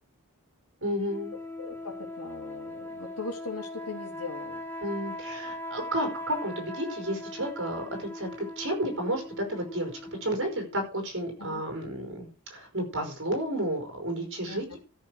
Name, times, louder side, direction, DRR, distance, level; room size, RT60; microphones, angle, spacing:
voice 1, 0.8-1.4 4.8-9.9 10.2-14.8, right 1 dB, 55° right, 4 dB, 5.1 m, -32 dB
sound 1, 1.1-10.8, left 1 dB, 10° left, 2.3 m, -40 dB
voice 2, 1.6-4.6 11.4-11.6 14.5-14.8, left 4 dB, 90° left, 3 dB, 3.0 m, -40 dB
13.5 x 6.6 x 6.3 m, 0.34 s
head